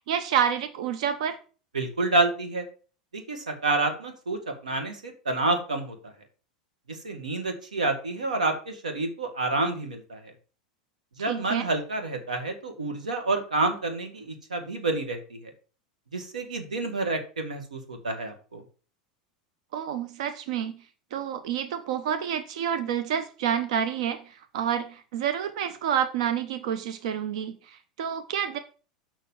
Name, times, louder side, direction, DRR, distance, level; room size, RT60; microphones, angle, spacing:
voice 1, 0.1-1.4 11.3-11.7 19.7-20.7 21.1-28.6, right 8 dB, 60° right, 9 dB, 0.9 m, -29 dB
voice 2, 1.7-2.7 3.1-6.1 7.0-10.3 11.2-15.5 16.1-18.6, right 2 dB, 80° right, 5 dB, 1.9 m, -29 dB
7.0 x 5.7 x 7.3 m, 0.38 s
figure-of-eight pair, 85°, 4 cm